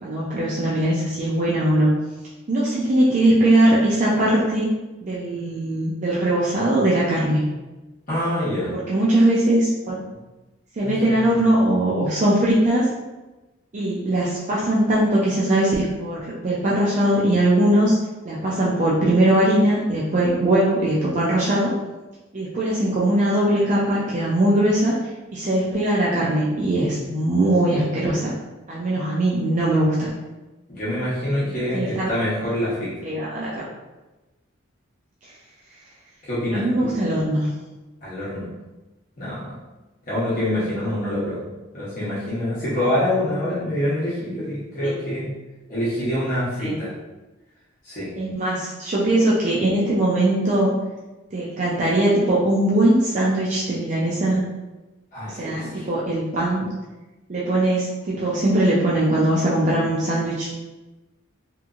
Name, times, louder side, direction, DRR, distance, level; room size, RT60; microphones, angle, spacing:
voice 1, 0.0-1.9 2.5-4.7 5.0-7.4 8.7-10.0 10.8-12.9 13.7-18.0 18.2-21.7 22.3-25.0 25.3-28.3 28.7-30.1 31.3-32.1 33.0-33.7 36.5-37.5 44.8-45.0 46.6-46.8 48.2-50.7 51.3-54.5 55.3-56.7 57.3-60.5, right 1 dB, 35° right, -6 dB, 0.4 m, -20 dB
voice 2, 8.1-8.7 10.8-11.3 30.7-32.9 36.2-36.9 38.0-38.4 39.2-39.5 40.0-41.4 41.7-45.3 45.7-46.9 47.8-48.1 55.1-55.9, left 1 dB, 40° left, -11 dB, 0.9 m, -25 dB
2.9 x 2.6 x 2.4 m, 1.1 s
head